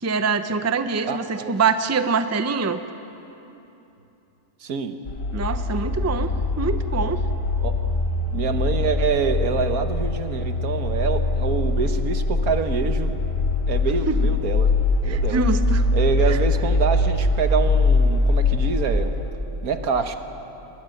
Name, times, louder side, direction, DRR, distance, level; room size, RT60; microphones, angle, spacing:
voice 1, 0.0-2.8 5.3-6.3 6.6-7.2 14.1-14.2 15.1-15.8 16.2-16.4, right 4 dB, 15° right, 9 dB, 0.5 m, -24 dB
voice 2, 1.0-1.5 4.6-5.0 7.6-7.7 8.3-13.1 13.7-14.7 15.0-15.4 15.9-19.1 19.6-20.2, right 6 dB, 80° right, 7 dB, 1.7 m, -26 dB
sound 1, 5.0-19.3, left 2 dB, 65° left, 2.7 m, -22 dB
22.0 x 21.5 x 7.8 m, 3.0 s
omnidirectional pair, 1.5 m